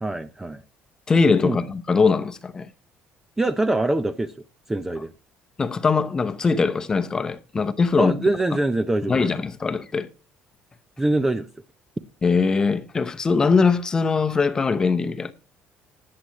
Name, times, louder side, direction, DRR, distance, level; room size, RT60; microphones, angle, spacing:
voice 1, 0.0-0.6 1.4-1.7 3.4-4.3 4.7-5.1 8.0-9.3 11.0-11.5, right 2 dB, 10° right, 0.5 m, -24 dB
voice 2, 1.1-2.7 5.6-8.1 9.1-10.1 12.2-15.3, left 4 dB, 20° left, 0.8 m, -21 dB
19.5 x 7.7 x 3.0 m
cardioid pair, 170°, 4 cm